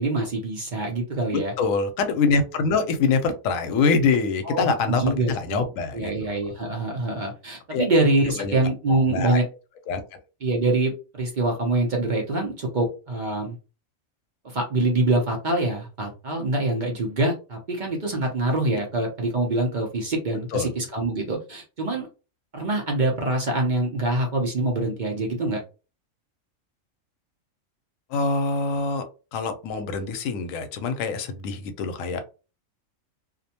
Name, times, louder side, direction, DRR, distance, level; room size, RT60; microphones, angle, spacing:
voice 1, 0.0-1.5 4.4-5.6 5.9-9.5 10.4-13.6 14.4-22.1 22.5-25.6, right 2 dB, 50° right, 0.7 m, -25 dB
voice 2, 1.6-6.3 7.7-7.9 8.4-8.6 8.9-9.4 9.9-10.2 20.5-20.7 28.1-29.0 29.3-32.2, left 4 dB, 85° left, 1.0 m, -25 dB
2.5 x 2.1 x 2.7 m
omnidirectional pair, 1.3 m